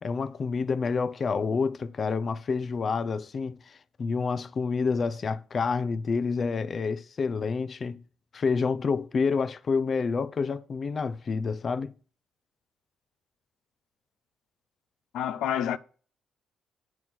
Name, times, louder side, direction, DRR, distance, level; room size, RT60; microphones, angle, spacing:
voice 1, 0.0-8.0 8.3-11.9, left 5 dB, 45° left, 0.6 m, -28 dB
voice 2, 15.1-15.8, left 10 dB, 85° left, 0.6 m, -28 dB
9.4 x 6.0 x 6.1 m
cardioid pair, 90°, 0 cm